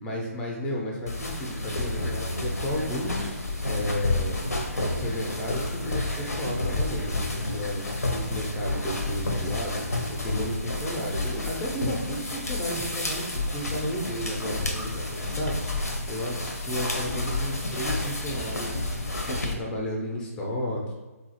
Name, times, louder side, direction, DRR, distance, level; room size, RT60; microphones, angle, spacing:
voice 1, 0.0-4.4 4.9-7.8 8.1-9.8 10.1-15.8 16.1-18.9 19.2-20.9, equal, 10° left, -1 dB, 0.4 m, -33 dB
sound 1, 1.1-19.5, left 2 dB, 75° left, 0.6 m, -30 dB
3.6 x 2.4 x 2.7 m, 1.2 s
figure-of-eight pair, 135°, 8 cm